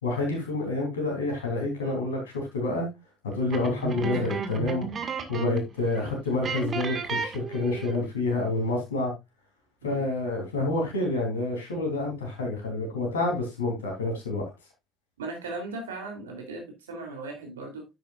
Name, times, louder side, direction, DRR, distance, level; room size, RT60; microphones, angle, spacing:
voice 1, 0.0-2.9 3.2-4.9 5.3-9.1 9.8-14.5, left 2 dB, 80° left, 1 dB, 3.5 m, -28 dB
sound 1, 3.5-5.7 6.0-6.1 6.4-8.1, right 5 dB, 40° right, 1.9 m, -33 dB
voice 2, 15.2-17.9, right 3 dB, 80° right, 3 dB, 3.2 m, -38 dB
10.0 x 9.0 x 2.5 m, 0.21 s
figure-of-eight pair, 55°, 0 cm